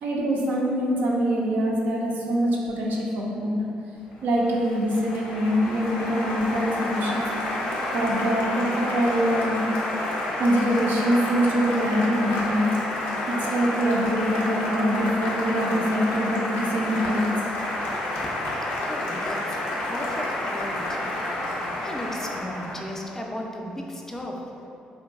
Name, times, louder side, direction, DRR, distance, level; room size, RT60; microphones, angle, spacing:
voice 1, 0.0-3.7 4.2-7.2 7.9-9.6 10.4-12.7 13.3-17.2, equal, 70° right, -3 dB, 0.4 m, -24 dB
Applause, 4.1-23.0, left 1 dB, 85° left, 0.4 m, -29 dB
voice 2, 18.5-21.0 21.8-24.4, left 1 dB, 15° left, 0 dB, 0.3 m, -35 dB
2.6 x 2.2 x 2.2 m, 2.6 s
supercardioid pair, 60°, 3 cm